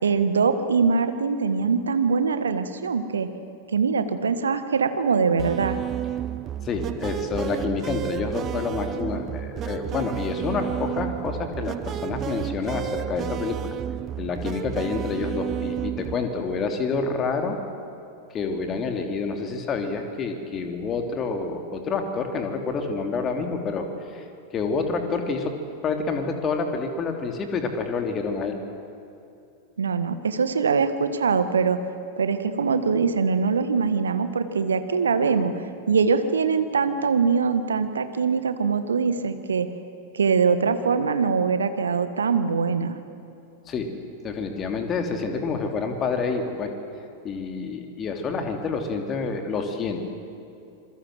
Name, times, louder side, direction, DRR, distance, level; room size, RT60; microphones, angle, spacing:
voice 1, 0.0-3.3 3.7-5.8 29.8-31.8 32.2-35.5 35.9-39.7 40.1-43.0, right 5 dB, 70° right, 10 dB, 1.5 m, -23 dB
sound 1, 5.4-16.1, right 10 dB, 30° right, 0.7 m, -31 dB
voice 2, 6.6-13.6 14.2-17.6 18.3-24.2 24.5-25.5 25.8-28.6 43.7-43.9 44.2-46.7 47.2-50.0, left 4 dB, 25° left, 5 dB, 3.1 m, -28 dB
27.0 x 22.5 x 7.8 m, 2.7 s
figure-of-eight pair, 90°, 0 cm